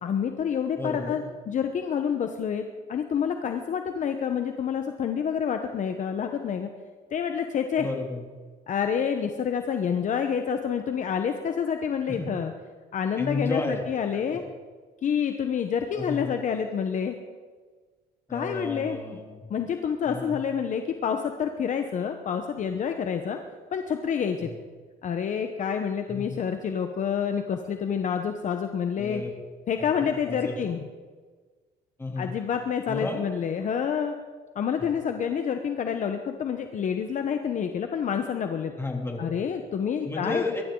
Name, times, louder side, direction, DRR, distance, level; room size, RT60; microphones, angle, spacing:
voice 1, 0.0-2.6 2.9-6.7 7.1-7.9 8.7-12.5 12.9-14.4 15.0-17.2 18.3-19.2 19.5-23.4 23.7-24.5 25.0-29.2 29.7-30.8 32.2-34.1 34.5-38.7 39.2-40.4, left 7 dB, 50° left, 6 dB, 1.1 m, -28 dB
voice 2, 0.8-1.2 7.8-8.2 12.1-12.3 13.2-13.8 14.1-14.2 15.9-16.2 18.3-19.4 20.1-20.3 24.4-24.5 26.1-26.3 29.0-29.3 29.8-29.9 30.3-30.6 32.0-32.3 32.9-33.2 38.8-39.3 40.0-40.6, left 2 dB, 15° left, 1 dB, 3.1 m, -32 dB
22.5 x 13.0 x 3.9 m, 1.4 s
cardioid pair, 110°, 17 cm